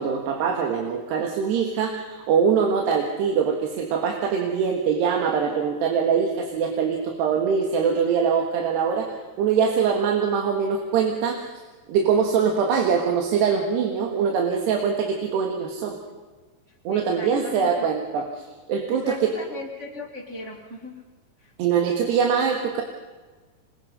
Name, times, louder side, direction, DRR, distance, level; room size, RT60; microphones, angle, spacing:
voice 1, 0.0-9.1 9.4-11.4 11.9-16.0 16.9-18.4 18.7-19.3 21.6-22.8, right 6 dB, 75° right, 2 dB, 3.7 m, -23 dB
voice 2, 16.9-17.9 18.9-21.0 21.4-21.5, left 2 dB, 40° right, -2 dB, 1.0 m, -37 dB
26.5 x 21.0 x 5.4 m, 1.3 s
omnidirectional pair, 5.0 m